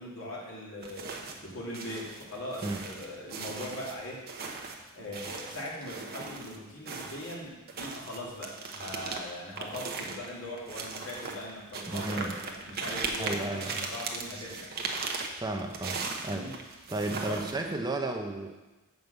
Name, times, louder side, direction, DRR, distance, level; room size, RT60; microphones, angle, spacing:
voice 1, 0.0-4.2 5.0-14.7 16.2-16.5 17.1-17.7, left 1 dB, 65° left, -4 dB, 2.6 m, -40 dB
sound 1, 0.8-1.5 1.7-6.6 6.9-17.8, right 4 dB, 45° right, 1.0 m, -38 dB
voice 2, 11.9-12.4 13.2-13.8 15.4-16.5 16.9-18.5, right 2 dB, 20° right, 3 dB, 0.7 m, -33 dB
7.6 x 5.4 x 6.7 m, 1.1 s
head